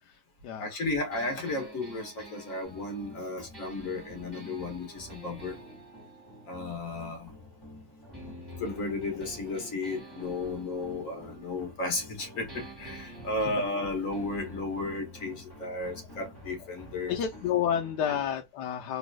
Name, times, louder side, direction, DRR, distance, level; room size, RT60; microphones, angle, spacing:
voice 1, 0.0-0.8 17.1-19.0, left 9 dB, 85° left, 1.2 m, -30 dB
voice 2, 0.6-5.6 6.4-7.3 8.6-17.2 18.1-18.2, left 2 dB, 50° left, 1.7 m, -34 dB
sound 1, 1.1-7.6 8.1-12.2 12.5-18.2, right 1 dB, 15° right, 2.1 m, -50 dB
sound 2, 2.6-18.3, equal, 15° left, 1.9 m, -50 dB
4.0 x 3.3 x 2.2 m
omnidirectional pair, 1.8 m